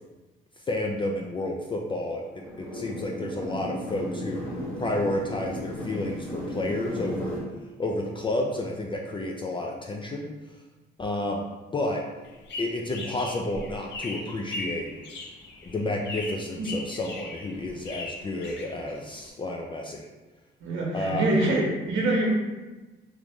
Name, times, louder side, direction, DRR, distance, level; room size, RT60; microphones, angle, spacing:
voice 1, 0.7-4.5 4.8-7.4 7.8-10.3 11.0-11.4 11.7-12.0 12.6-14.9 15.6-20.1 20.9-21.3, left 1 dB, 25° left, 0 dB, 0.4 m, -30 dB
sound 1, 2.3-7.4, left 1 dB, 80° left, 1.5 m, -35 dB
sound 2, 12.2-19.3, left 2 dB, 60° left, 0.7 m, -39 dB
voice 2, 20.6-22.3, right 2 dB, 75° right, -2 dB, 0.9 m, -25 dB
3.1 x 2.5 x 3.5 m, 1.2 s
cardioid pair, 90°, 20 cm